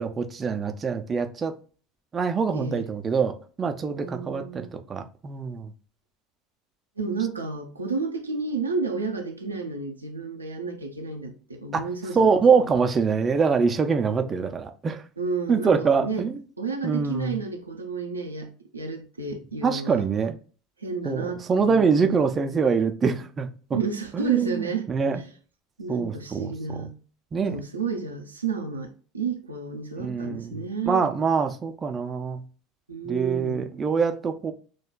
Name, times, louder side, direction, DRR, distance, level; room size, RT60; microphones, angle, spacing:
voice 1, 0.0-1.5 2.1-5.7 11.7-11.9 12.2-15.0 15.5-16.4 16.8-17.4 19.6-20.4 21.0-23.5 24.1-25.2 25.9-26.5 27.3-27.6 30.0-30.6 30.9-32.4 33.1-34.5, right 5 dB, 25° right, 0.5 m, -24 dB
voice 2, 2.5-2.9 4.0-4.7 7.0-12.4 14.2-14.3 15.2-16.3 16.6-20.1 20.8-22.2 23.7-24.9 25.1-25.3 25.8-26.9 27.4-31.0 32.9-33.7, right 4 dB, 85° right, 0.6 m, -31 dB
6.2 x 2.3 x 2.2 m
figure-of-eight pair, 75°, 0 cm